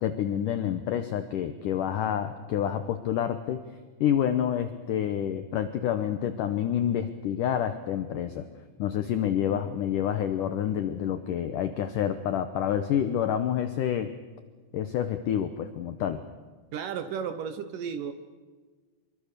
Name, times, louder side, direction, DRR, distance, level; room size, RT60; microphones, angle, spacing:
voice 1, 0.0-3.6 4.0-8.5 8.8-14.1 14.7-16.2, left 10 dB, 90° left, 9 dB, 1.8 m, -28 dB
voice 2, 16.7-18.1, right 7 dB, 70° right, 10 dB, 2.1 m, -33 dB
25.0 x 23.0 x 6.8 m, 1.4 s
omnidirectional pair, 5.1 m